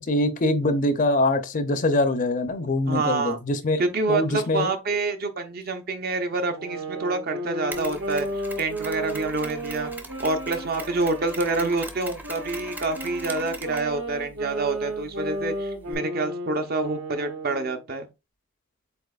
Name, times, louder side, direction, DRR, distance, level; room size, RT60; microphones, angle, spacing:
voice 1, 0.0-3.8 4.1-4.7, left 2 dB, 40° left, 0.5 m, -23 dB
voice 2, 2.9-3.4 3.8-8.3 8.6-9.9 10.2-18.1, right 3 dB, 45° right, 0.7 m, -27 dB
sound 1, 6.5-11.7 12.2-17.8, right 1 dB, 80° right, 1.4 m, -34 dB
Mechanisms, 7.7-15.9, right 2 dB, 10° right, 0.6 m, -42 dB
7.8 x 2.9 x 2.4 m
head